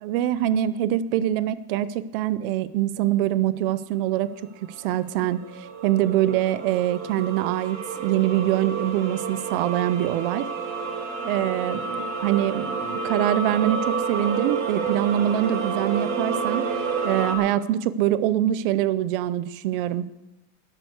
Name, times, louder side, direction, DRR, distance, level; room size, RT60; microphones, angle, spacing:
voice 1, 0.0-4.3 4.8-10.5 11.2-16.7 17.0-20.0, right 12 dB, 40° right, 16 dB, 0.6 m, -24 dB
sound 1, 4.7-17.3, right 5 dB, 60° right, 4.3 m, -29 dB
12.5 x 11.0 x 7.9 m, 0.95 s
supercardioid pair, 175°, 43 cm